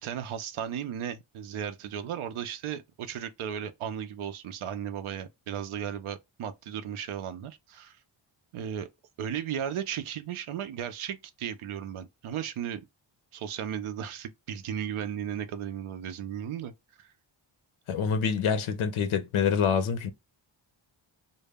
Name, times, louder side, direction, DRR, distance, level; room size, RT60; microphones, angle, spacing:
voice 1, 0.0-8.0 8.5-8.9 9.2-12.8 13.3-16.7 17.0-17.1, right 9 dB, 90° right, 0.5 m, -35 dB
voice 2, 17.9-20.1, left 6 dB, 90° left, 0.6 m, -26 dB
2.1 x 2.0 x 3.3 m
wide cardioid pair, 105°, 48 cm